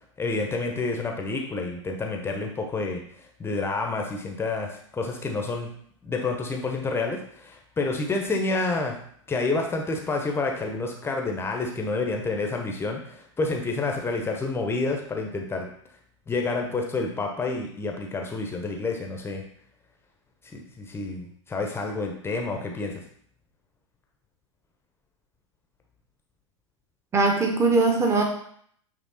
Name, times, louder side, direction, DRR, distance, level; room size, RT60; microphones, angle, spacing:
voice 1, 0.2-3.0 3.4-5.7 6.0-9.0 9.3-15.7 16.3-19.4 20.5-23.0, left 3 dB, 15° left, 2 dB, 1.0 m, -29 dB
voice 2, 27.1-28.2, right 3 dB, 15° right, 2 dB, 1.3 m, -21 dB
9.2 x 3.4 x 4.2 m, 0.64 s
figure-of-eight pair, 85°, 17 cm